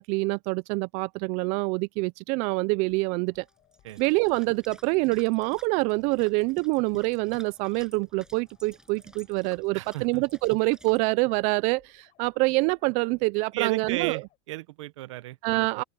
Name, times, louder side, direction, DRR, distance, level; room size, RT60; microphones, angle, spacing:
voice 1, 0.0-3.4 4.0-14.2 15.4-15.8, right 26 dB, 50° right, 0.4 m, -26 dB
sound 1, 2.7-14.4, left 15 dB, 45° left, 7.5 m, -65 dB
sound 2, 3.5-11.0, right 1 dB, 5° right, 7.6 m, -54 dB
voice 2, 9.7-10.2 13.5-15.7, right 16 dB, 85° right, 1.2 m, -34 dB
open air
supercardioid pair, 135°, 15 cm